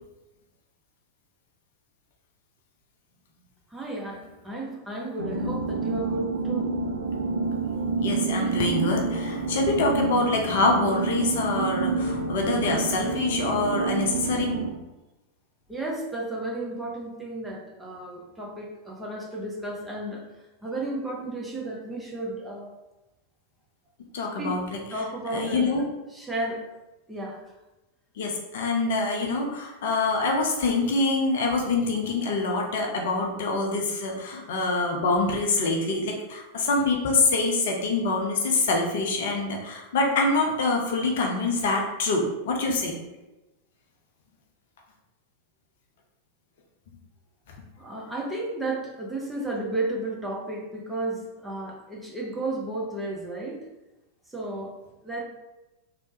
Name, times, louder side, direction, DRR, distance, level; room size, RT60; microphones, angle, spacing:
voice 1, 3.7-6.7 15.7-20.2 20.6-22.7 24.4-24.5 24.9-25.7 26.1-26.6 27.1-27.4 47.8-53.6 54.3-54.7 55.0-55.2, right 2 dB, 5° right, -3 dB, 0.6 m, -33 dB
sound 1, 5.2-14.7, right 3 dB, 70° right, 0.4 m, -28 dB
voice 2, 8.0-14.5 24.1-24.6 24.9-25.0 25.3-25.8 28.2-43.0, left 3 dB, 55° left, 1 dB, 0.5 m, -25 dB
3.1 x 2.1 x 2.7 m, 1.0 s
figure-of-eight pair, 90°, 0 cm